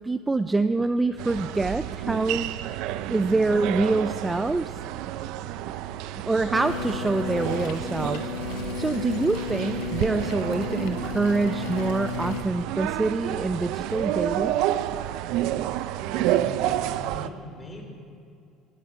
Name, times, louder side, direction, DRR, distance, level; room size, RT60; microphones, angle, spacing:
voice 1, 0.0-2.5 3.1-4.8 6.3-8.3 8.6-14.6, right 3 dB, 15° right, 11 dB, 0.4 m, -26 dB
sound 1, 1.2-17.3, right 12 dB, 75° right, 0.5 m, -30 dB
sound 2, 6.5-12.4, left 6 dB, 80° left, 1.0 m, -33 dB
voice 2, 16.1-17.9, equal, 20° left, 1 dB, 3.1 m, -40 dB
18.5 x 8.4 x 5.9 m, 2.5 s
supercardioid pair, 115°, 0 cm